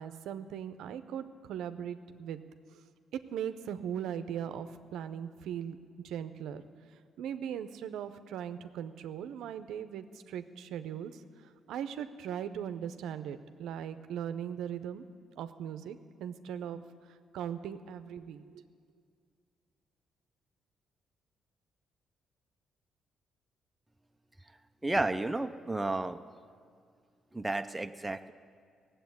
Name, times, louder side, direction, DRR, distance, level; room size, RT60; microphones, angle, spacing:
voice 1, 0.0-2.4 2.7-2.8 3.3-5.8 6.0-6.6 7.2-15.0 15.4-16.8 17.1-18.6, right 9 dB, 85° right, 10 dB, 0.6 m, -39 dB
voice 2, 24.8-26.2 27.3-28.3, right 2 dB, 10° right, 8 dB, 0.6 m, -32 dB
16.0 x 7.8 x 9.3 m, 2.2 s
cardioid pair, 90°, 0 cm